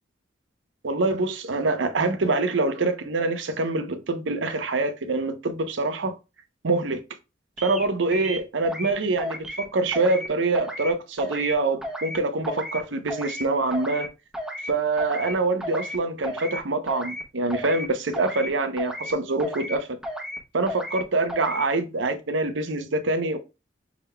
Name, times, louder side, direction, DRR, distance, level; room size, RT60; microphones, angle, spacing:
voice 1, 0.8-6.1 6.6-7.0 7.6-14.1 14.7-20.0 20.5-23.4, right 3 dB, 75° right, 0.7 m, -25 dB
sound 1, 7.6-7.8 8.1-8.9 9.2-9.6 9.9-10.3 10.5-10.9 11.2-11.5 11.8-12.2 12.4-12.8 13.1-13.4 13.7-14.1 14.3-14.7 15.0-15.3 15.6-16.0 16.2-16.6 16.9-17.2 17.5-17.9 18.1-18.5 18.8-19.1 19.4-19.8 20.0-20.4 20.7-21.0 21.3-21.6, equal, 5° right, 1.1 m, -33 dB
6.0 x 3.6 x 2.2 m
head